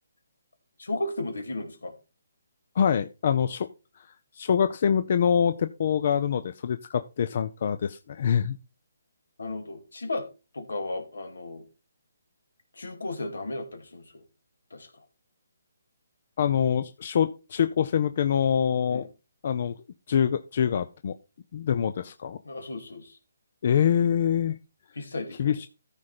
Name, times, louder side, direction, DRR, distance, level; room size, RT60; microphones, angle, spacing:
voice 1, 0.8-1.9 9.4-10.2 10.5-11.6 12.8-14.2 14.7-14.9 18.9-19.1 22.4-23.2 25.0-25.6, left 2 dB, 85° left, 7 dB, 2.5 m, -34 dB
voice 2, 2.8-3.7 4.3-8.6 16.4-19.1 19.4-19.7 20.1-21.1 21.5-22.4 23.6-24.6 25.4-25.7, left 8 dB, 50° left, 12 dB, 0.6 m, -25 dB
14.0 x 5.0 x 4.3 m, 0.29 s
hypercardioid pair, 150°, 0 cm